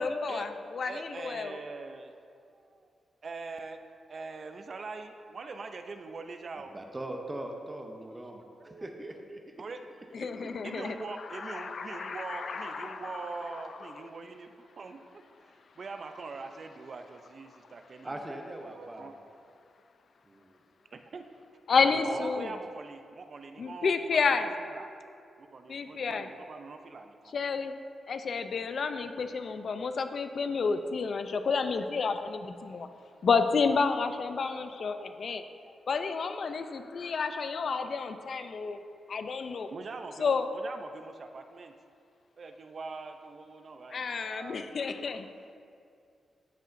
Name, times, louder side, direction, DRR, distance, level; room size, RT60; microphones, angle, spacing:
voice 1, 0.0-1.6 10.1-11.0 11.3-13.1 13.5-13.6 21.7-22.5 23.6-24.5 25.7-26.3 27.3-27.7 28.1-32.9 33.2-35.4 35.9-38.8 39.1-39.7 40.2-40.5 43.9-45.3, left 5 dB, 65° left, 8 dB, 0.5 m, -30 dB
voice 2, 0.8-2.9 3.2-3.8 4.1-6.7 8.6-8.9 9.6-9.8 10.1-10.2 10.6-15.0 15.5-18.2 18.8-19.1 20.9-21.2 21.8-24.5 24.7-24.9 25.4-27.3 39.7-41.7 42.4-45.1, right 4 dB, 55° right, 6 dB, 0.5 m, -43 dB
voice 3, 6.6-8.4 8.6-9.5 10.3-10.6 18.0-19.1 20.3-20.5 21.9-22.3, right 1 dB, 25° right, 3 dB, 0.8 m, -41 dB
11.5 x 6.4 x 2.6 m, 2.4 s
cardioid pair, 60°, 0 cm